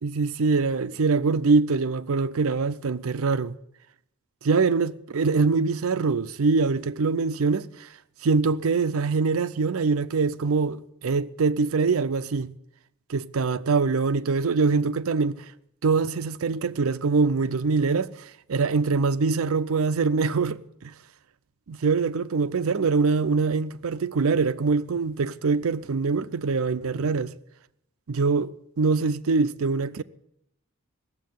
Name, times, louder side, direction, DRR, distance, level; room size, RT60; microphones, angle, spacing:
voice 1, 0.0-3.5 4.4-7.9 8.2-12.5 13.1-15.4 15.8-20.9 21.7-27.3 28.1-30.0, right 4 dB, 75° right, 0.5 m, -24 dB
17.0 x 7.5 x 9.3 m
head